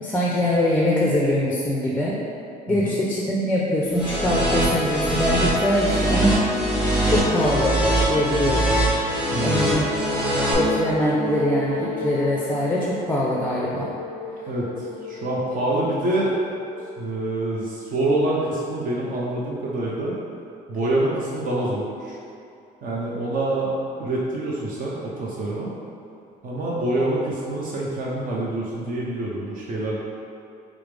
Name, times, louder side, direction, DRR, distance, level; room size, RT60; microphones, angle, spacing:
voice 1, 0.0-2.2 2.7-6.5 7.0-7.8 8.1-8.6 9.4-9.9 10.5-13.9, left 1 dB, 10° left, -4 dB, 0.4 m, -23 dB
sound 1, 3.9-10.5, right 1 dB, 5° right, 0.9 m, -23 dB
voice 2, 9.3-9.8 14.5-16.4 17.0-20.2 20.7-22.2 22.8-25.7 26.4-30.0, right 1 dB, 55° right, -5 dB, 0.6 m, -26 dB
sound 2, 9.8-17.5, left 2 dB, 75° right, 0.9 m, -34 dB
4.7 x 2.0 x 3.3 m, 2.6 s
cardioid pair, 110°, 17 cm